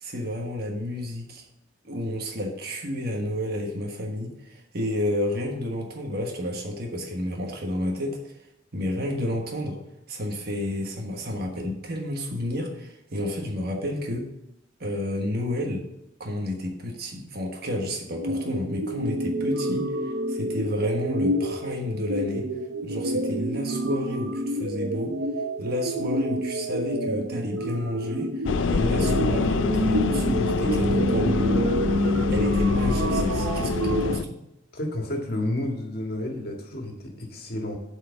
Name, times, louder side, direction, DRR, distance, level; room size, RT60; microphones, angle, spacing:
voice 1, 0.0-1.4 1.8-8.3 8.7-9.8 10.1-14.3 14.8-15.9 16.2-22.5 22.8-25.2 25.6-31.7 32.3-34.4, left 1 dB, 55° right, 2 dB, 1.3 m, -30 dB
sound 1, 18.1-34.2, right 1 dB, 85° right, 0.8 m, -27 dB
sound 2, 28.5-34.2, left 4 dB, 75° left, 0.4 m, -26 dB
voice 2, 34.7-37.8, left 1 dB, 55° left, 2 dB, 1.8 m, -31 dB
8.3 x 4.7 x 6.8 m, 0.88 s
head